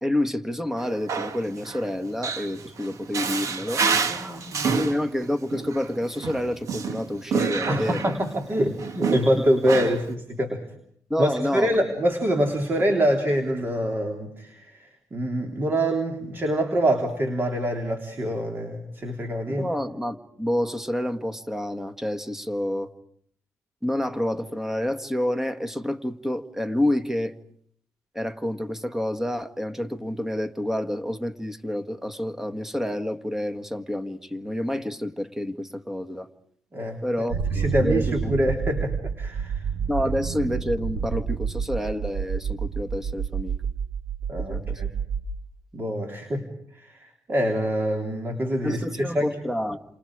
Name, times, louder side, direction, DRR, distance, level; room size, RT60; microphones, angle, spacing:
voice 1, 0.0-3.8 4.7-8.1 11.1-11.8 19.5-22.9 23.8-27.4 28.2-36.3 37.0-38.3 39.9-43.6 44.5-44.8 48.6-49.8, left 1 dB, 5° right, 7 dB, 1.7 m, -28 dB
Male speech man speaking, 0.8-8.4 8.8-10.1, right 5 dB, 60° right, 2.1 m, -28 dB
voice 2, 4.1-4.9 7.7-10.6 11.2-19.7 36.7-37.0 37.5-39.7 44.3-44.9 45.7-46.5 46.7-49.3, equal, 35° right, 3 dB, 3.5 m, -25 dB
sound 1, 37.3-45.2, right 6 dB, 80° right, 3.2 m, -29 dB
29.5 x 27.5 x 5.0 m, 0.65 s
cardioid pair, 80°, 6 cm